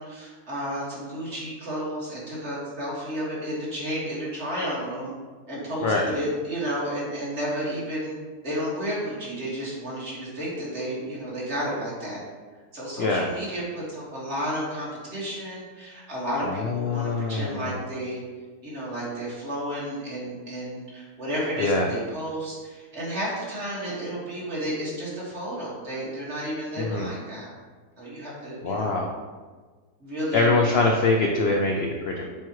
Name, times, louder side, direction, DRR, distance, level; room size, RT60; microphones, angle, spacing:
voice 1, 0.0-5.1 5.5-8.2 8.4-12.2 12.7-18.2 18.6-27.5 28.0-29.0 30.0-30.9, equal, 40° right, -7 dB, 2.1 m, -32 dB
voice 2, 16.4-17.8 21.6-21.9 26.8-27.1 28.6-29.1 30.3-32.2, left 3 dB, 80° left, 1 dB, 0.5 m, -24 dB
7.4 x 4.5 x 3.0 m, 1.4 s
omnidirectional pair, 1.8 m